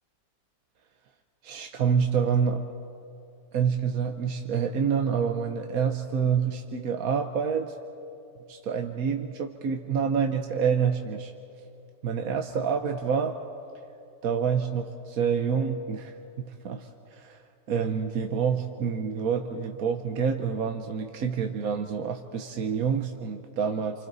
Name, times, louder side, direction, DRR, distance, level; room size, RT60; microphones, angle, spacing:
voice 1, 1.4-2.7 3.5-7.8 8.5-11.3 12.0-13.3 14.2-17.4 17.7-24.1, right 6 dB, 65° right, 4 dB, 1.3 m, -27 dB
29.0 x 28.0 x 4.1 m, 2.7 s
omnidirectional pair, 1.7 m